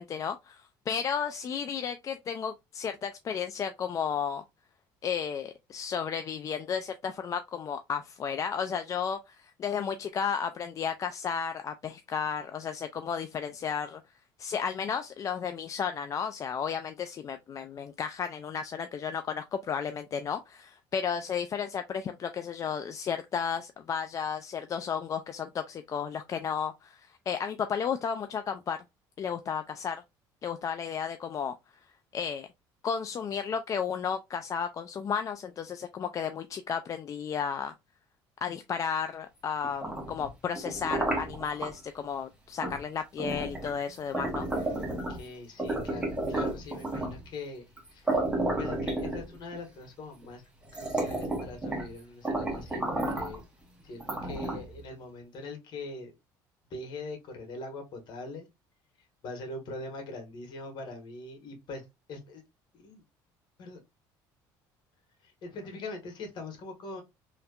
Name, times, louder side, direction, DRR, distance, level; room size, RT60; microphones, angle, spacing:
voice 1, 0.0-4.4 5.0-14.0 14.4-28.8 29.2-30.0 30.4-31.6 32.1-32.5 32.8-37.7 38.4-44.7, left 7 dB, 35° left, 0.3 m, -33 dB
sound 1, 39.6-41.7 42.6-42.8 43.2-45.3 45.6-47.2 47.8-47.9 48.1-49.6 50.2-50.3 50.7-51.9 52.2-53.4 54.0-54.8, right 1 dB, 10° right, 1.2 m, -32 dB
voice 2, 44.4-47.6 47.9-48.2 48.6-50.4 50.7-53.4 53.8-56.1 56.7-58.5 59.2-62.4 62.7-63.0 63.6-63.8 65.2-67.0, left 2 dB, 55° left, 1.5 m, -42 dB
3.2 x 2.8 x 2.3 m
supercardioid pair, 100°, 9 cm